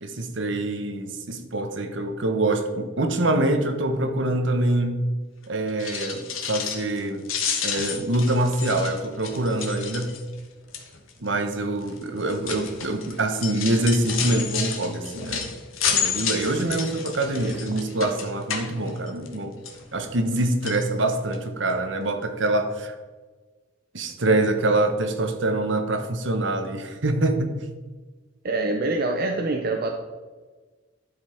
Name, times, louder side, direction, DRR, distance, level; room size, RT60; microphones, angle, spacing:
voice 1, 0.0-5.0 5.5-7.3 7.6-10.1 11.2-15.5 16.0-19.5 19.9-22.9 23.9-27.5, right 2 dB, 65° right, 7 dB, 1.0 m, -25 dB
sound 1, 5.7-7.0 7.2-10.4 10.7-11.1 11.8-19.3 19.7-20.4 20.6-20.8 21.3-21.4 21.7-21.8, left 7 dB, 85° left, 1.3 m, -30 dB
voice 2, 28.4-29.9, right 2 dB, 50° right, 2 dB, 0.7 m, -25 dB
12.0 x 5.3 x 4.4 m, 1.3 s
head